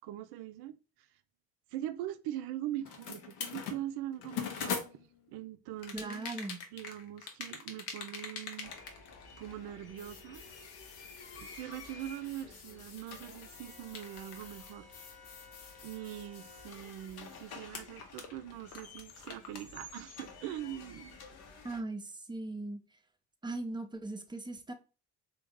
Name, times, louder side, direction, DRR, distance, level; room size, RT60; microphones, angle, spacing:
voice 1, 0.0-1.1 1.7-6.3 6.7-8.7 9.4-10.4 11.3-14.9 15.8-21.2, right 12 dB, 55° right, 0.5 m, -42 dB
sound 1, 2.8-5.3 5.8-9.7 10.0-17.4 17.7-19.7, left 6 dB, 80° left, 0.7 m, -44 dB
voice 2, 5.9-6.6 21.6-22.8 23.4-24.7, right 2 dB, 10° right, 0.6 m, -39 dB
sound 2, 8.6-21.8, left 4 dB, 55° left, 0.8 m, -52 dB
3.4 x 2.4 x 3.6 m
figure-of-eight pair, 45°, 45 cm